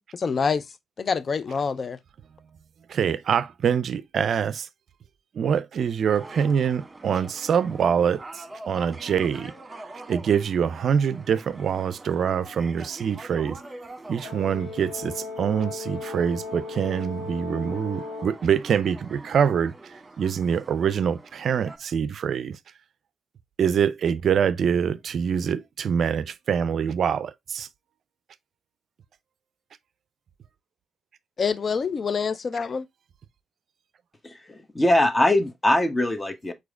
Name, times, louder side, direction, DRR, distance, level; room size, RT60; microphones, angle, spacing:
voice 1, 0.1-0.7 1.0-2.0 31.4-32.9, left 5 dB, 50° left, 0.5 m, -26 dB
voice 2, 2.9-4.7 5.3-9.5 10.1-13.6 14.1-19.7 20.2-22.6 23.6-27.7, right 7 dB, 60° right, 0.4 m, -25 dB
sound 1, 6.0-21.8, right 2 dB, 25° right, 1.3 m, -44 dB
Brass instrument, 14.2-18.4, left 4 dB, 80° left, 0.9 m, -36 dB
voice 3, 34.2-36.5, left 1 dB, 25° left, 1.1 m, -22 dB
4.8 x 4.3 x 2.3 m
hypercardioid pair, 45°, 0 cm